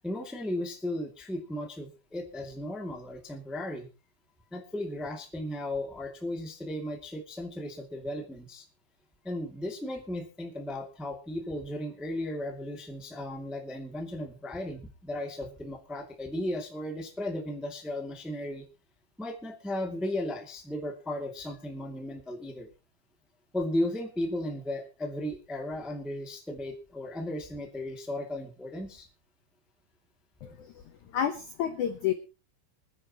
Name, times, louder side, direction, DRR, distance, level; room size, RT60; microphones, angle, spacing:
voice 1, 0.0-3.9 4.5-8.6 9.2-18.6 19.2-22.7 23.5-29.1, left 1 dB, ahead, 2 dB, 0.8 m, -35 dB
voice 2, 30.4-30.7 31.1-32.1, left 9 dB, 85° left, 8 dB, 1.7 m, -30 dB
25.5 x 10.0 x 3.0 m, 0.31 s
omnidirectional pair, 5.1 m